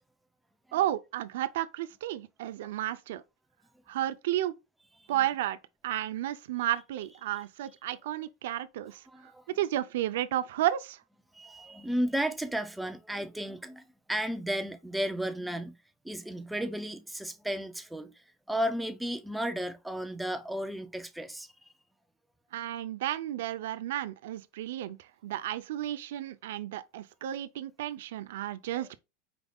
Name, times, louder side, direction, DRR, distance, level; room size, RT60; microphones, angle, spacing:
voice 1, 0.7-3.2 3.9-4.5 5.1-5.6 5.8-11.0 22.5-29.0, right 13 dB, 85° right, 0.4 m, -32 dB
voice 2, 9.1-9.4 11.3-15.8 16.0-21.5, equal, 5° right, 0.4 m, -34 dB
4.9 x 3.5 x 2.2 m
supercardioid pair, 165°, 0 cm